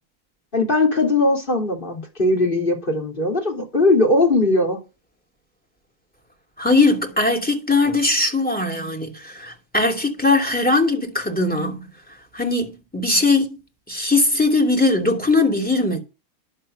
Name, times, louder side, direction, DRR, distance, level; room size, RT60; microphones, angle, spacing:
voice 1, 0.5-4.8, left 2 dB, 35° left, 3.5 m, -19 dB
voice 2, 6.6-11.8 12.3-13.6 13.9-16.0, left 2 dB, 5° left, 2.6 m, -20 dB
11.0 x 6.6 x 6.6 m
omnidirectional pair, 1.6 m